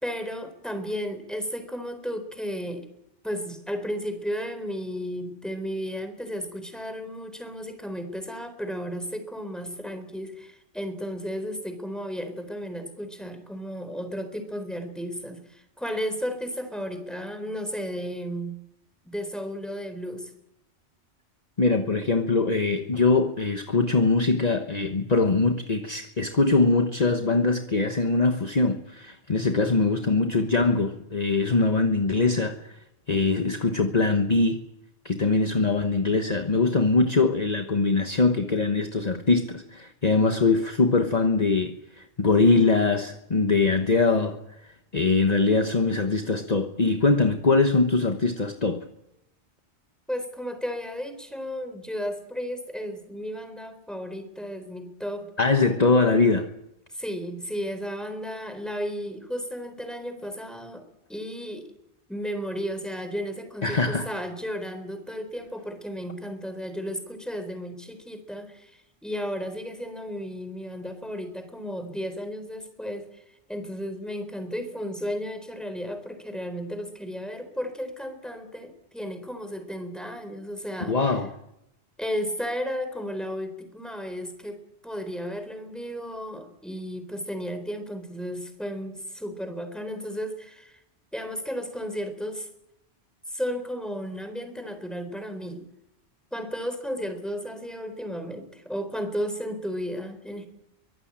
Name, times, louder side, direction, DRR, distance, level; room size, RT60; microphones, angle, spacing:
voice 1, 0.0-2.9 3.2-18.6 19.0-20.3 50.1-55.3 56.9-61.7 62.1-73.2 73.5-81.0 82.0-90.8 91.1-92.5 93.3-95.7 96.3-100.5, equal, ahead, 8 dB, 3.9 m, -34 dB
voice 2, 21.6-32.8 33.1-34.6 35.0-44.4 44.9-48.9 55.4-56.5 63.6-64.1 80.9-81.3, left 3 dB, 40° left, 6 dB, 1.3 m, -22 dB
23.5 x 18.0 x 8.8 m, 0.86 s
omnidirectional pair, 1.1 m